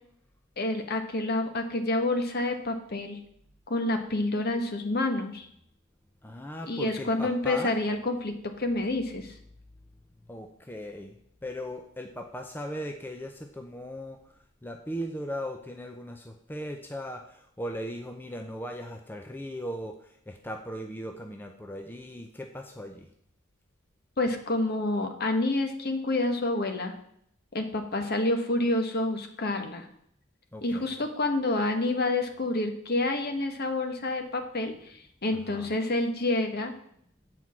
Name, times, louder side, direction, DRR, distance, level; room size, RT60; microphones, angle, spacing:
voice 1, 0.6-3.2 3.7-5.5 6.7-9.3 24.2-26.9 27.5-29.9 30.6-36.7, left 2 dB, 45° left, 6 dB, 1.1 m, -28 dB
voice 2, 6.2-7.7 10.3-11.2 11.4-14.2 14.6-23.1 30.5-30.9 35.5-35.7, equal, 10° left, 4 dB, 0.5 m, -38 dB
8.0 x 4.6 x 7.3 m, 0.69 s
head